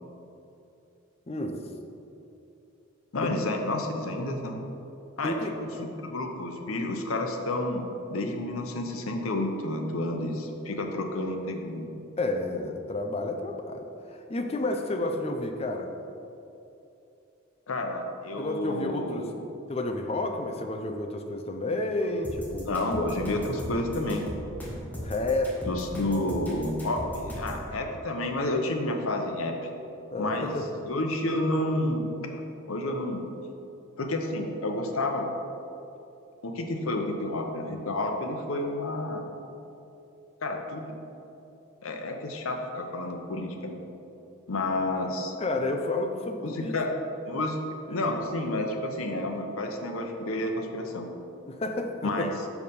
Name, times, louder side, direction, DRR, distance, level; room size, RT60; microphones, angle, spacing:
voice 1, 1.3-1.6 3.2-3.3 5.2-5.9 12.2-15.9 18.4-19.3 19.7-22.8 25.0-25.8 30.1-30.6 45.4-47.0 47.9-48.1 51.5-52.3, left 2 dB, 30° left, 4 dB, 0.5 m, -31 dB
voice 2, 3.1-4.6 5.2-11.9 17.7-19.3 22.6-24.3 25.6-29.6 30.2-30.5 30.9-32.4 32.7-33.2 34.0-35.3 36.4-39.2 40.4-41.0 41.8-43.8 44.5-45.3 46.4-46.9 47.2-47.6 47.9-51.1 52.0-52.3, left 1 dB, 80° left, 3 dB, 0.8 m, -30 dB
sound 1, 22.2-27.6, equal, 10° left, 1.3 m, -37 dB
6.8 x 4.8 x 5.4 m, 2.8 s
head